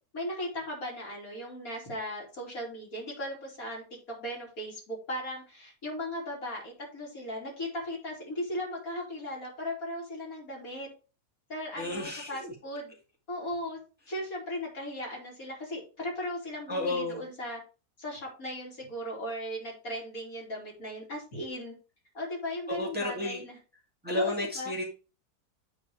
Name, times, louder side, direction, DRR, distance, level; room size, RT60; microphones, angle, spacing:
voice 1, 0.1-3.8 4.2-10.9 11.5-12.9 13.3-13.8 14.1-17.6 18.0-21.8 22.1-23.6 24.1-24.7, left 1 dB, 60° left, -2 dB, 3.8 m, -37 dB
voice 2, 11.8-12.5 16.7-17.2 22.7-23.4 24.0-24.8, left 2 dB, 5° right, -1 dB, 2.0 m, -32 dB
8.9 x 4.2 x 4.7 m, 0.33 s
omnidirectional pair, 1.7 m